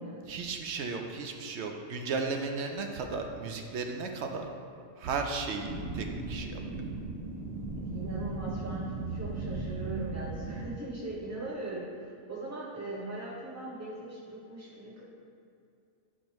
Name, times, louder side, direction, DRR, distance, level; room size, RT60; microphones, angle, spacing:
voice 1, 0.3-4.5 5.0-6.6, right 4 dB, 70° right, 4 dB, 0.8 m, -35 dB
sound 1, 5.6-10.6, right 3 dB, 85° right, 1.4 m, -37 dB
voice 2, 7.8-15.0, right 2 dB, 25° right, -5 dB, 0.4 m, -40 dB
8.5 x 4.3 x 3.1 m, 2.5 s
omnidirectional pair, 1.3 m